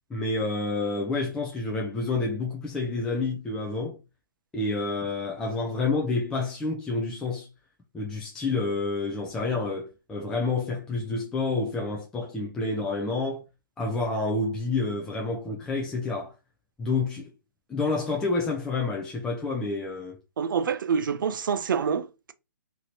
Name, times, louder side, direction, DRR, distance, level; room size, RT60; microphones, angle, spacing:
voice 1, 0.1-4.0 4.5-7.5 7.9-13.4 13.8-16.3 16.8-17.3 17.7-20.2, left 3 dB, 5° left, 0.4 m, -29 dB
voice 2, 20.4-22.3, right 6 dB, 65° right, 0.4 m, -27 dB
2.9 x 2.6 x 2.9 m
hypercardioid pair, 150°, 12 cm